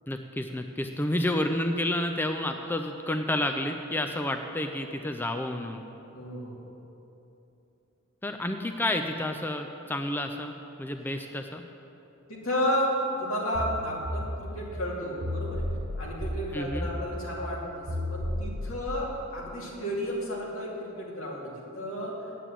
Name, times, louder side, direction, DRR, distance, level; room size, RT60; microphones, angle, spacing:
voice 1, 0.1-5.8 8.2-10.5 10.8-11.6 16.5-16.9, left 1 dB, 10° left, 5 dB, 0.4 m, -30 dB
voice 2, 6.1-6.6 12.3-12.9 13.2-15.7 16.0-22.2, equal, 80° left, -4 dB, 2.6 m, -32 dB
sound 1, 13.5-18.9, equal, 85° right, 1.1 m, -34 dB
9.2 x 8.3 x 7.5 m, 3.0 s
head